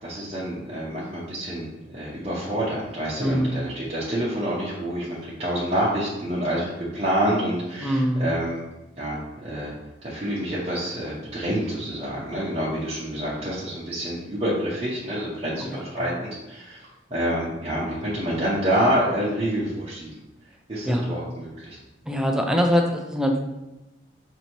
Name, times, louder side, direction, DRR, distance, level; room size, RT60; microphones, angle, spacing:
voice 1, 0.0-8.6 9.0-9.7 10.0-16.8 17.1-20.2 20.7-21.8, equal, 35° right, -8 dB, 0.7 m, -27 dB
voice 2, 3.2-3.7 7.8-8.3 15.6-16.2 20.9-21.3 22.1-23.4, equal, 5° right, 2 dB, 0.3 m, -24 dB
5.2 x 2.7 x 3.0 m, 1.0 s
head